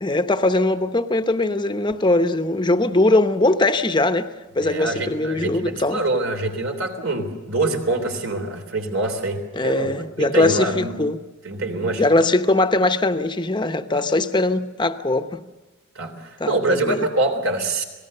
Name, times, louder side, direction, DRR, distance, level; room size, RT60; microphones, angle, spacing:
voice 1, 0.0-4.3 4.6-6.0 9.5-11.2 12.0-15.4 16.4-17.1, left 2 dB, 20° left, 0.8 m, -20 dB
voice 2, 4.6-10.9 11.4-12.3 13.9-14.0 16.0-17.8, right 2 dB, 75° right, 3.5 m, -25 dB
26.5 x 18.5 x 6.6 m
head